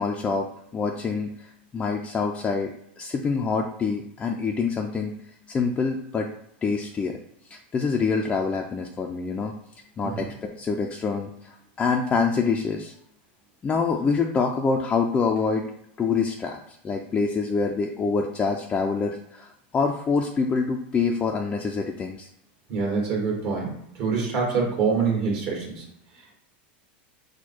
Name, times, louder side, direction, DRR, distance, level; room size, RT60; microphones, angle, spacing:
voice 1, 0.0-2.7 3.0-5.1 5.5-6.3 6.6-7.2 7.5-9.5 10.0-12.9 13.6-15.7 16.0-22.3, left 5 dB, 20° left, 2 dB, 0.4 m, -26 dB
voice 2, 22.7-23.7 24.0-25.8, right 5 dB, 50° right, -2 dB, 1.6 m, -25 dB
4.5 x 2.2 x 4.3 m, 0.75 s
supercardioid pair, 130°, 6 cm